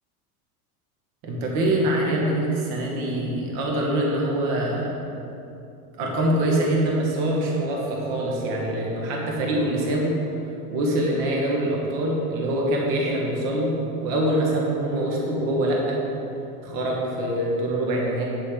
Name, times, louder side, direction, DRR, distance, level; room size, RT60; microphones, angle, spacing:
voice 1, 1.2-4.9 6.0-10.2 10.7-16.0 16.6-18.2, right 1 dB, 45° right, -2 dB, 1.7 m, -24 dB
8.4 x 7.7 x 3.9 m, 2.8 s
supercardioid pair, 155°, 45 cm